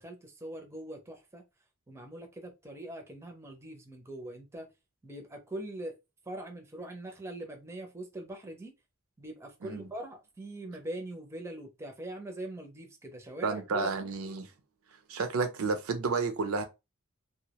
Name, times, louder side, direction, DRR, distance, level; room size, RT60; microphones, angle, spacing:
voice 1, 0.0-1.4 1.9-4.7 5.0-6.0 6.3-8.7 9.2-13.9, right 1 dB, 15° right, 0.4 m, -42 dB
voice 2, 13.4-14.5 15.1-16.6, right 4 dB, 85° right, 0.5 m, -31 dB
2.2 x 2.0 x 2.8 m
head